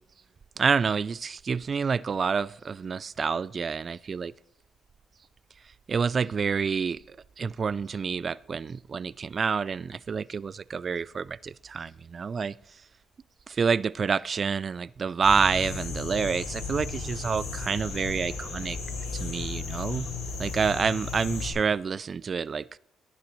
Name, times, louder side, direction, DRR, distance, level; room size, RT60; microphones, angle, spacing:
voice 1, 0.6-4.3 5.9-12.6 13.5-18.8 19.1-20.1 20.4-22.7, right 5 dB, 40° right, 0.3 m, -28 dB
sound 1, 15.2-21.5, left 4 dB, 85° left, 5.9 m, -35 dB
18.0 x 10.5 x 3.1 m
cardioid pair, 90°, 0 cm